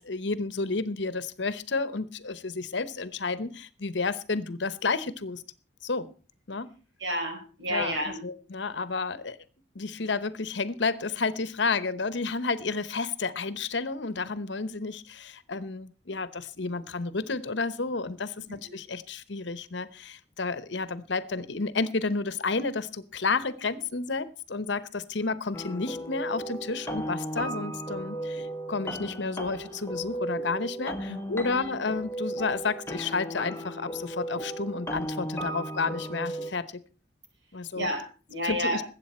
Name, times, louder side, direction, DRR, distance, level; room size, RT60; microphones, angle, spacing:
voice 1, 0.0-5.4 5.8-6.1 6.5-6.7 7.7-8.0 8.2-9.4 9.7-36.8 37.5-37.9 38.4-38.8, left 4 dB, 65° left, 15 dB, 0.9 m, -31 dB
voice 2, 7.0-8.2 18.6-18.8 37.7-38.8, equal, 70° right, 4 dB, 4.4 m, -31 dB
sound 1, 25.5-36.5, right 1 dB, 15° left, 1.1 m, -35 dB
20.5 x 8.3 x 4.3 m, 0.36 s
head